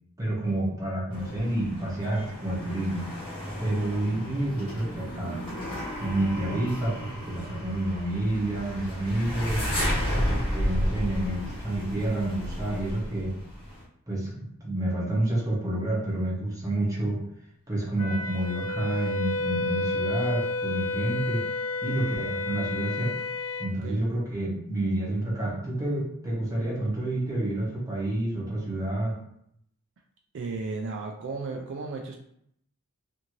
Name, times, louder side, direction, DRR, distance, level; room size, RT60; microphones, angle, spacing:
voice 1, 0.2-3.1 3.6-5.4 6.0-9.7 10.3-13.4 14.1-17.2 17.7-21.4 21.8-23.1 23.6-29.2, right 1 dB, 15° right, -5 dB, 0.9 m, -29 dB
sound 1, 1.1-13.8, equal, 25° left, 0.9 m, -33 dB
Wind instrument woodwind instrument, 18.0-23.7, left 2 dB, 85° left, 0.4 m, -31 dB
voice 2, 23.6-24.0 30.3-32.2, right 3 dB, 60° right, 1 dB, 0.3 m, -35 dB
2.6 x 2.5 x 3.0 m, 0.71 s
head